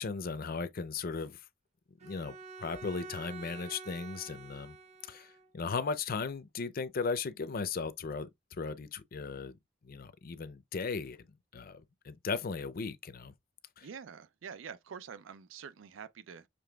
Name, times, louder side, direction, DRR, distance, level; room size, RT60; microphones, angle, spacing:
voice 1, 0.0-1.4 2.0-4.8 5.1-9.6 9.8-11.3 11.5-13.3 13.8-13.9, left 4 dB, 50° left, 0.5 m, -37 dB
Bowed string instrument, 2.0-5.5, right 4 dB, 35° right, 0.8 m, -48 dB
voice 2, 13.8-16.5, right 6 dB, 85° right, 0.5 m, -46 dB
6.8 x 3.2 x 2.3 m
head